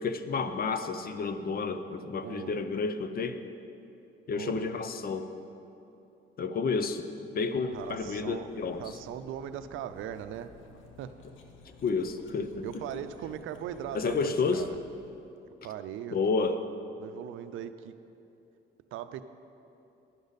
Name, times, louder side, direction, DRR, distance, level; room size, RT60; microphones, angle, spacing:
voice 1, 0.0-3.4 4.3-5.3 6.4-8.8 11.8-12.7 13.9-14.6 16.1-16.6, left 4 dB, 50° left, 10 dB, 0.7 m, -30 dB
voice 2, 2.2-2.6 4.3-4.7 7.7-8.5 8.7-10.5 11.0-11.1 12.6-14.8 15.6-16.7 17.0-17.9 18.9-19.2, right 10 dB, 85° right, 11 dB, 0.5 m, -39 dB
Cutlery silverware, 7.6-15.4, left 4 dB, 80° left, 0.9 m, -54 dB
11.0 x 10.5 x 4.1 m, 2.8 s
cardioid pair, 90°, 20 cm